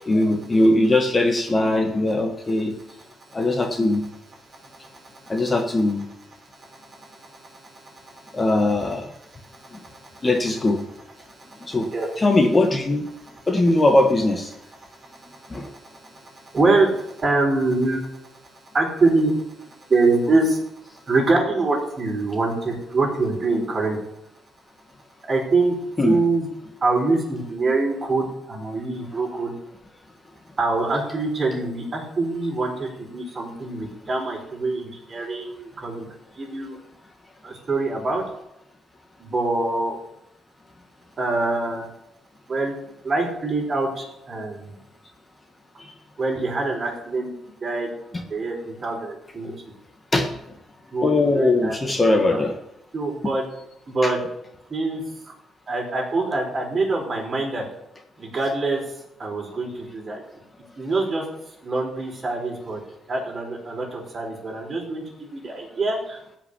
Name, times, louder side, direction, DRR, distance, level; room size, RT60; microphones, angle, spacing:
voice 1, 0.1-2.7 3.3-4.0 5.3-6.1 8.3-9.1 9.7-9.8 10.2-10.8 11.6-11.9 12.2-13.1 13.5-14.5 15.5-15.7 26.0-26.2 45.8-45.9 49.4-49.6 50.1-50.3 51.0-52.5 54.0-54.1, left 2 dB, 25° left, 4 dB, 1.7 m, -20 dB
voice 2, 4.5-5.3 6.5-8.4 9.3-10.3 11.2-12.1 14.9-18.1 18.7-19.3 19.9-20.6 21.1-24.0 25.3-25.8 26.0-26.5 26.8-29.5 30.6-36.0 36.4-36.8 37.4-38.2 39.2-40.0 41.2-41.9 42.5-42.7 43.0-44.7 46.2-47.3 47.6-49.5 50.9-51.8 52.1-52.4 52.9-53.5 53.9-54.2 54.7-55.0 55.7-57.6 58.2-58.8 59.2-60.2 60.8-61.2 61.6-62.8 63.1-66.4, right 3 dB, 35° right, -1 dB, 5.2 m, -25 dB
15.0 x 6.1 x 8.5 m, 0.83 s
cardioid pair, 90°, 0 cm